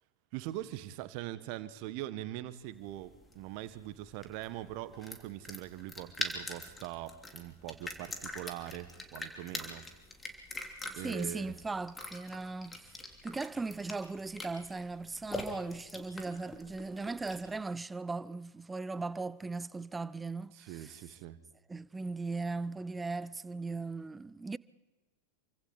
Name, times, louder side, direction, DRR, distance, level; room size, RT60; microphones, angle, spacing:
voice 1, 0.3-9.9 11.0-11.6 20.5-21.4, right 14 dB, 45° right, 1.4 m, -42 dB
sound 1, 2.7-17.6, left 2 dB, 10° left, 3.1 m, -44 dB
voice 2, 11.0-12.8 13.2-20.9 21.7-24.6, right 3 dB, 10° right, 0.6 m, -38 dB
28.5 x 24.5 x 4.1 m
figure-of-eight pair, 90°, 0 cm